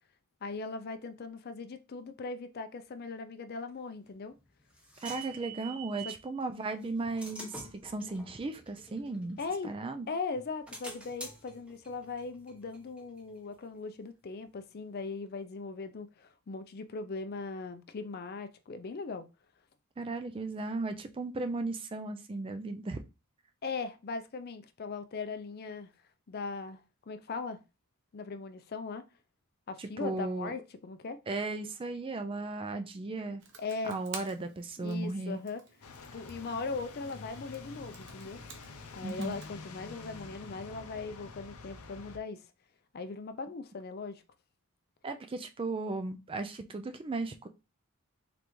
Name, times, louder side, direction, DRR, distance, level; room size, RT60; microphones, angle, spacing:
voice 1, 0.4-4.3 6.0-6.1 9.4-9.7 10.1-19.2 23.6-25.9 26.3-27.6 28.1-29.0 29.7-31.2 33.6-34.0 34.8-35.6 36.1-38.4 38.9-42.5 42.9-44.2, left 4 dB, 45° left, 0.4 m, -39 dB
sound 1, 4.1-6.3 6.8-9.9 10.3-13.8, right 3 dB, 5° right, 0.9 m, -47 dB
voice 2, 5.0-9.4 9.6-10.1 20.0-23.0 29.8-30.5 31.3-33.4 33.9-35.4 39.0-39.4 45.0-47.5, right 3 dB, 25° right, 0.4 m, -36 dB
Computer keyboard, 33.4-39.5, right 5 dB, 55° right, 0.8 m, -51 dB
sound 2, 35.8-42.2, left 4 dB, 90° left, 0.6 m, -48 dB
3.8 x 3.4 x 3.1 m
head